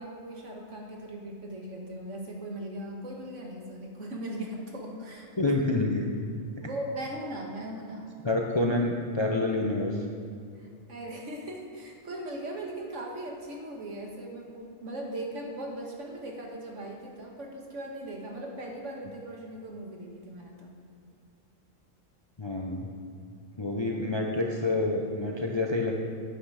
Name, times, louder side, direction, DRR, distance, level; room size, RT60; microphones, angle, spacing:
voice 1, 0.0-5.5 6.6-8.1 10.6-20.7, right 1 dB, 65° right, 0 dB, 1.8 m, -39 dB
voice 2, 5.4-6.1 8.2-10.0 22.4-22.9 23.6-25.9, left 2 dB, 25° left, 0 dB, 0.6 m, -27 dB
9.0 x 8.9 x 4.9 m, 2.5 s
omnidirectional pair, 1.4 m